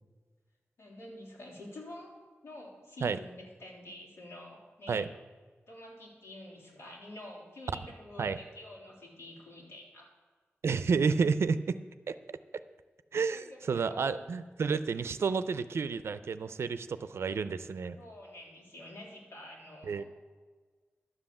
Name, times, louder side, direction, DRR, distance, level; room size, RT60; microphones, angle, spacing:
voice 1, 0.8-2.1 2.4-5.1 5.7-10.1 13.3-14.2 18.0-20.0, left 1 dB, 85° left, -3 dB, 3.6 m, -48 dB
voice 2, 10.6-11.6 12.1-12.2 13.1-18.0 19.8-20.0, right 5 dB, 80° right, 12 dB, 0.5 m, -30 dB
11.5 x 7.7 x 7.1 m, 1.4 s
wide cardioid pair, 135°, 4 cm